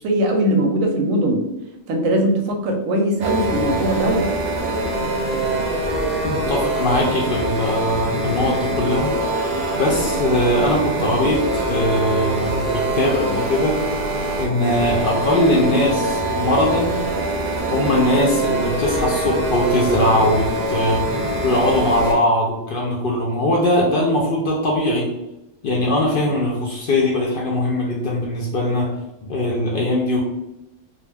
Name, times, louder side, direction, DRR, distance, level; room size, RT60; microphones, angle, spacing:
voice 1, 0.0-1.4 1.9-4.3, right 1 dB, 90° right, 3 dB, 1.0 m, -20 dB
sound 1, 3.2-22.1, right 1 dB, 55° right, 0.6 m, -23 dB
voice 2, 6.2-9.2 9.7-13.8 14.4-17.0 17.7-21.0 21.4-25.1 25.6-28.9 29.2-30.2, left 1 dB, 60° left, -3 dB, 0.5 m, -20 dB
2.4 x 2.3 x 3.3 m, 0.93 s
omnidirectional pair, 1.3 m